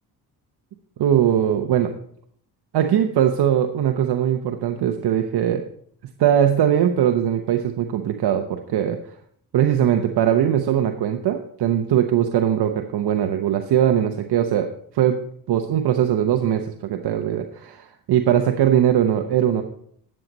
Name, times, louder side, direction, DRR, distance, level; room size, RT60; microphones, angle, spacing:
voice 1, 1.0-1.9 2.7-5.6 6.2-9.0 9.5-14.7 14.9-15.2 15.5-19.6, right 10 dB, 75° right, 6 dB, 0.9 m, -20 dB
11.0 x 7.4 x 5.3 m, 0.64 s
cardioid pair, 85°, 40 cm